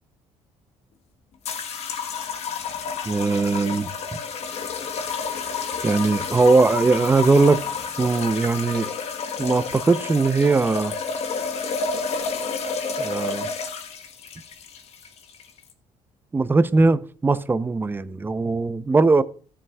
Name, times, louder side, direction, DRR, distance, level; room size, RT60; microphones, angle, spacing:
sound 1, 1.4-15.7, left 5 dB, 60° left, 1.1 m, -30 dB
voice 1, 3.1-3.9 5.8-7.6 8.0-8.9 9.4-10.9 13.0-13.5 16.3-19.2, right 3 dB, 15° right, 0.5 m, -20 dB
14.5 x 7.5 x 2.3 m
cardioid pair, 105°, 12 cm